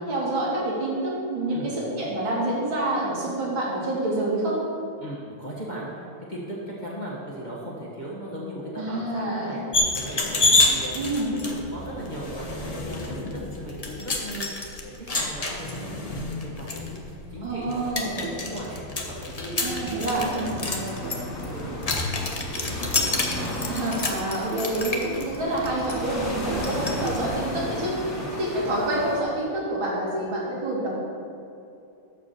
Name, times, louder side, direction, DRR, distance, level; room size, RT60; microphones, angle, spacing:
voice 1, 0.1-4.6 8.8-9.6 10.9-11.3 17.4-18.2 19.6-20.5 23.7-27.9 28.3-30.9, right 1 dB, 65° right, -6 dB, 3.3 m, -27 dB
voice 2, 5.0-14.5 14.8-22.9 28.1-28.3, equal, 25° left, -6 dB, 1.5 m, -38 dB
sound 1, 9.7-27.2, left 2 dB, 60° left, 0.4 m, -29 dB
sound 2, 18.2-22.0 22.5-27.4, right 5 dB, 80° right, 1.5 m, -41 dB
sound 3, 20.4-29.2, equal, 40° left, 2.3 m, -34 dB
12.5 x 4.8 x 6.9 m, 2.7 s
omnidirectional pair, 2.3 m